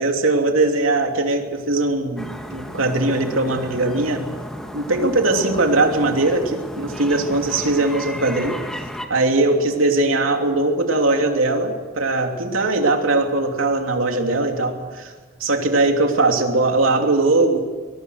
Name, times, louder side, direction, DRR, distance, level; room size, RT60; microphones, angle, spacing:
voice 1, 0.0-4.3 4.7-8.6 9.1-15.1 15.4-17.6, right 2 dB, 80° right, 3 dB, 2.9 m, -20 dB
sound 1, 2.2-9.1, equal, 5° left, 1.7 m, -34 dB
23.5 x 22.0 x 6.5 m, 1.4 s
head